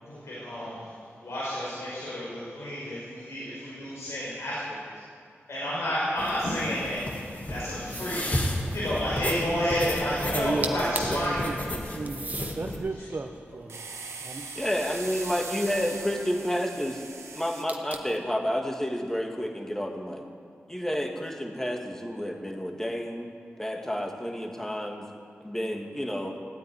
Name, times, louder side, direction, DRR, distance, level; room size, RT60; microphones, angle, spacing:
voice 1, 0.0-0.8 1.2-4.8 5.5-7.0 7.5-8.3 8.7-11.5, equal, 85° left, -8 dB, 5.2 m, -30 dB
sound 1, 6.2-12.8, left 1 dB, 35° left, 2.5 m, -33 dB
sound 2, 7.9-8.4 10.4-10.5 10.6-11.3 12.1-12.6 13.3-14.7 17.7-18.2, right 2 dB, 35° right, 1.4 m, -37 dB
voice 2, 10.3-14.0 14.2-14.5, right 3 dB, 50° right, 3 dB, 1.1 m, -34 dB
sound 3, 13.7-17.6, right 4 dB, 85° right, 1.5 m, -40 dB
voice 3, 14.6-16.9 17.3-20.2 20.7-23.3 23.6-25.0 25.4-26.4, equal, 10° left, 2 dB, 2.1 m, -30 dB
16.0 x 9.1 x 9.7 m, 2.2 s
wide cardioid pair, 70°, 5 cm